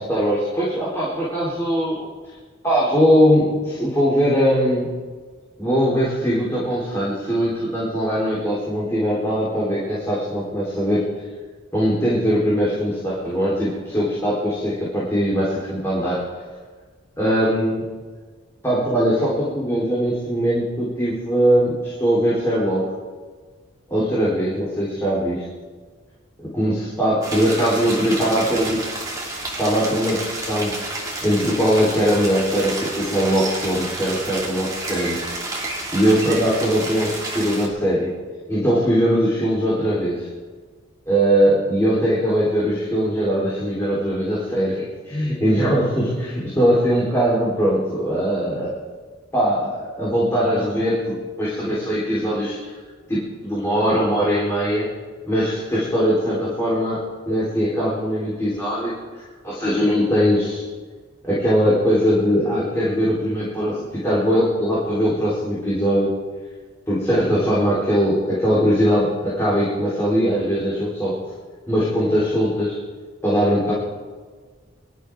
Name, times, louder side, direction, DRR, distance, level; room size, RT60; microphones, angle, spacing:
voice 1, 0.0-2.1 2.6-4.9 5.6-11.0 11.7-16.2 17.2-17.8 18.6-22.8 23.9-25.4 26.4-28.8 29.6-30.7 31.2-35.2 35.9-38.1 38.5-40.3 41.1-48.7 49.3-52.7 53.1-54.9 55.3-57.0 57.3-60.6 61.2-66.1 66.9-71.2 71.7-72.8 73.2-73.7, equal, 15° left, -8 dB, 4.1 m, -21 dB
sound 1, 27.2-37.7, right 2 dB, 15° right, 2.8 m, -30 dB
25.0 x 13.0 x 3.8 m, 1.4 s
head